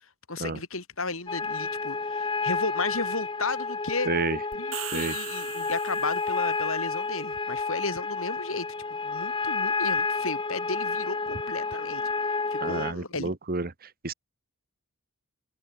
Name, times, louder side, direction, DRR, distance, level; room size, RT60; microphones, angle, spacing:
voice 1, 0.3-4.1 4.5-13.3, left 3 dB, 65° left, 6.8 m, -34 dB
sound 1, 1.3-12.9, left 4 dB, 25° left, 1.9 m, -30 dB
voice 2, 4.0-4.4 4.9-5.2 12.6-14.1, right 3 dB, 45° right, 1.4 m, -30 dB
sound 2, 4.5-6.4, right 12 dB, 70° right, 7.2 m, -39 dB
open air
head